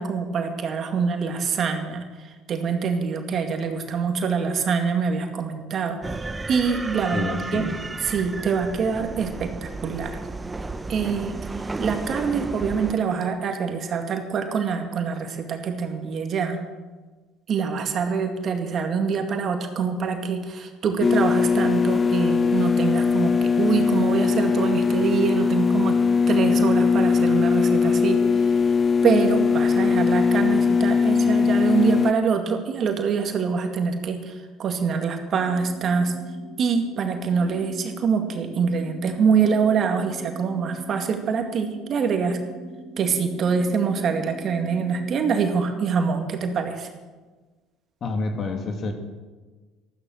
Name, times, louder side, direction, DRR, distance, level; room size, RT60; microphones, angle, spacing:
voice 1, 0.0-6.1 6.5-7.6 8.0-10.2 10.9-16.6 17.5-26.0 26.3-28.6 29.0-36.1 36.6-42.4 43.0-46.9, right 6 dB, 50° right, 5 dB, 2.2 m, -25 dB
sound 1, 6.0-12.9, right 3 dB, 20° right, 0.8 m, -33 dB
voice 2, 7.1-7.7 48.0-48.9, left 3 dB, 45° left, 5 dB, 2.4 m, -28 dB
sound 2, 21.0-32.1, left 5 dB, 25° left, 0.6 m, -20 dB
sound 3, 35.3-45.3, right 2 dB, 75° left, 6.3 m, -42 dB
13.5 x 12.5 x 6.5 m, 1.3 s
hypercardioid pair, 70°, 0 cm